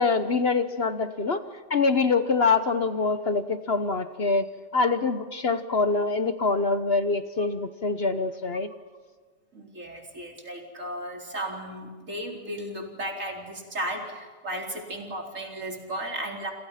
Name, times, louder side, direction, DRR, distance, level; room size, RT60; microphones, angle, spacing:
voice 1, 0.0-1.4 1.7-4.5 4.7-8.7, left 4 dB, 50° left, 10 dB, 1.3 m, -24 dB
voice 2, 9.5-16.5, right 1 dB, 75° right, 2 dB, 4.6 m, -35 dB
29.5 x 28.0 x 5.8 m, 1.5 s
omnidirectional pair, 1.4 m